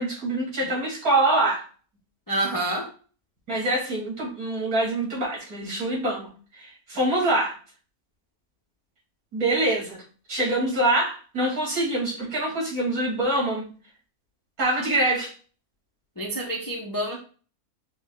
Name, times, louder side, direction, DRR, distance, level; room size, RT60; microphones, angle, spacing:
voice 1, 0.0-1.6 3.5-6.3 6.6-7.5 9.3-10.0 10.3-13.7 14.6-15.3, right 2 dB, 75° right, -4 dB, 2.6 m, -25 dB
voice 2, 2.3-2.9 16.2-17.2, right 1 dB, 25° left, 0 dB, 0.4 m, -28 dB
5.8 x 2.1 x 3.8 m, 0.39 s
omnidirectional pair, 1.5 m